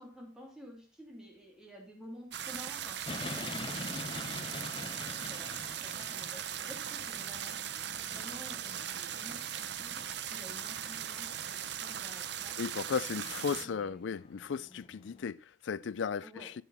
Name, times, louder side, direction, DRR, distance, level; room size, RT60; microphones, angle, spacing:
voice 1, 0.0-7.6 8.0-12.6 13.0-14.1 16.2-16.5, equal, 5° right, 2.9 m, -51 dB
sound 1, 2.3-13.7, right 9 dB, 60° right, 0.7 m, -39 dB
sound 2, 3.0-15.3, left 3 dB, 25° left, 0.6 m, -46 dB
voice 2, 12.6-16.3, left 6 dB, 75° left, 0.4 m, -35 dB
10.0 x 7.8 x 4.1 m
head